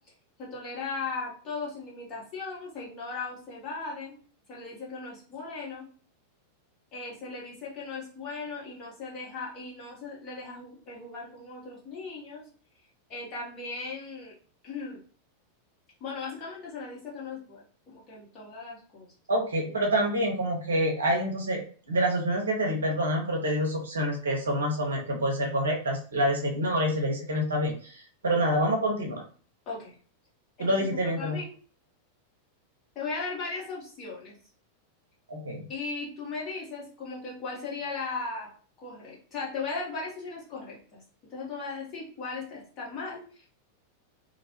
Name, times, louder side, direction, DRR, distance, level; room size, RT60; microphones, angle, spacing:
voice 1, 0.4-4.2 4.5-5.9 6.9-12.4 13.1-14.3 14.6-15.0 16.0-19.1 29.7-29.9 30.6-31.5 32.9-34.3 35.7-38.5 38.8-41.0 41.3-43.5, left 4 dB, 35° left, -5 dB, 1.1 m, -37 dB
voice 2, 19.3-21.6 21.9-29.2 30.6-31.4 35.3-35.7, equal, 70° right, 0 dB, 0.6 m, -27 dB
2.5 x 2.0 x 2.9 m, 0.43 s
figure-of-eight pair, 90°, 0 cm